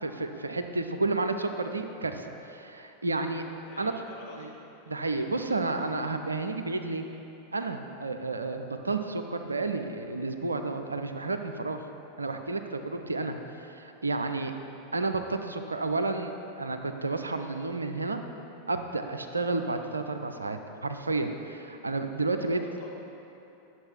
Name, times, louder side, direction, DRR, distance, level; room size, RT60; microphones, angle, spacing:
voice 1, 0.0-3.4 3.8-3.9 4.4-4.5 4.9-7.1 7.5-11.9 12.2-14.5 14.9-18.2 18.7-22.6, right 3 dB, 80° right, 7 dB, 0.5 m, -31 dB
voice 2, 3.6-4.5 22.4-22.9, left 2 dB, 50° left, -4 dB, 2.0 m, -48 dB
10.5 x 7.2 x 4.5 m, 3.0 s
figure-of-eight pair, 90°, 0 cm